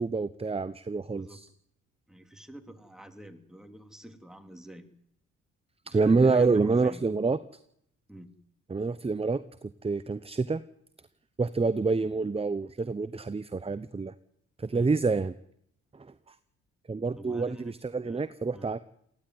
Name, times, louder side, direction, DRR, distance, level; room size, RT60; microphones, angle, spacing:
voice 1, 0.0-1.5 5.9-7.4 8.7-10.6 11.4-14.1 14.6-15.3 15.9-16.1 16.9-18.8, right 4 dB, 15° right, 15 dB, 0.8 m, -27 dB
voice 2, 1.1-1.4 2.1-4.9 5.9-7.0 8.1-8.3 14.7-14.9 17.1-17.8 18.0-18.7, right 1 dB, ahead, 6 dB, 3.0 m, -46 dB
19.0 x 15.5 x 9.6 m, 0.73 s
hypercardioid pair, 50°, 34 cm